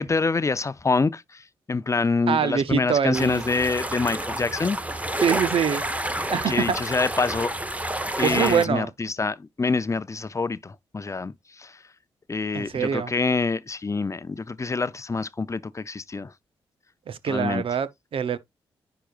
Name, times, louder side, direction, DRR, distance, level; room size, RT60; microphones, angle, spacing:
voice 1, 0.0-5.1 6.5-7.5 8.2-11.8 12.3-16.3 17.3-17.6, left 4 dB, 30° left, 0.6 m, -26 dB
voice 2, 2.3-3.4 5.2-5.8 6.3-6.8 8.2-8.9 12.5-13.1 17.1-18.4, right 7 dB, 60° right, 0.7 m, -24 dB
sound 1, 3.1-8.7, right 1 dB, 15° right, 1.0 m, -29 dB
10.0 x 4.9 x 2.5 m
supercardioid pair, 45°, 10 cm